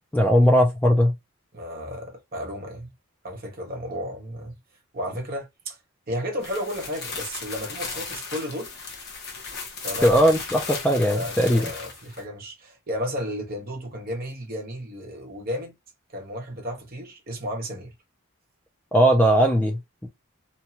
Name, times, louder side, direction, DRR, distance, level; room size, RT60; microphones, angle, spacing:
voice 1, 0.1-1.1 10.0-11.7 18.9-20.1, equal, 10° left, 0.4 m, -19 dB
voice 2, 1.5-2.9 3.2-4.5 4.9-5.8 6.1-8.7 9.8-10.1 11.1-15.7 16.1-17.9, equal, 40° right, 0.9 m, -33 dB
sound 1, 6.4-12.2, left 4 dB, 50° left, 0.9 m, -36 dB
3.0 x 2.2 x 2.8 m
head